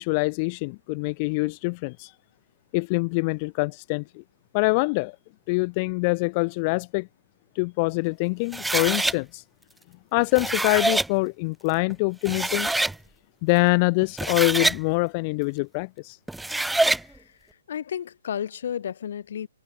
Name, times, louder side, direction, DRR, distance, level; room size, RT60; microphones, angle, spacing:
voice 1, 0.0-2.1 2.7-4.2 4.5-5.2 5.5-7.1 7.5-9.4 10.1-12.7 13.4-16.2, left 30 dB, 35° left, 2.8 m, -24 dB
sound 1, 8.5-9.2 10.2-11.1 11.9-12.0 12.3-13.0 14.0-14.8 16.3-17.0, right 2 dB, 5° right, 2.1 m, -25 dB
voice 2, 16.9-19.5, left 9 dB, 60° left, 4.7 m, -33 dB
hypercardioid pair, 135°, 0 cm